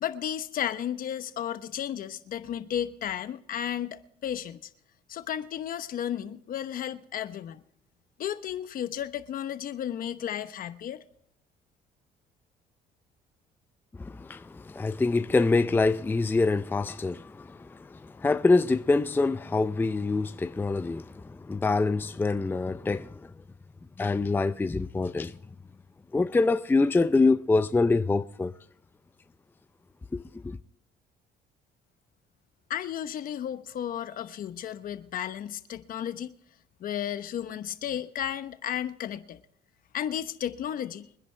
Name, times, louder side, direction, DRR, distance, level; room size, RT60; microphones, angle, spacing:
voice 1, 0.0-4.7 5.1-7.6 8.2-11.0 32.7-36.3 36.8-39.4 39.9-41.1, left 10 dB, 55° left, 1.0 m, -33 dB
voice 2, 14.0-23.2 24.0-25.4 26.1-28.5 30.1-30.6, left 3 dB, 10° left, 0.5 m, -25 dB
24.5 x 10.5 x 3.3 m
cardioid pair, 110°, 17 cm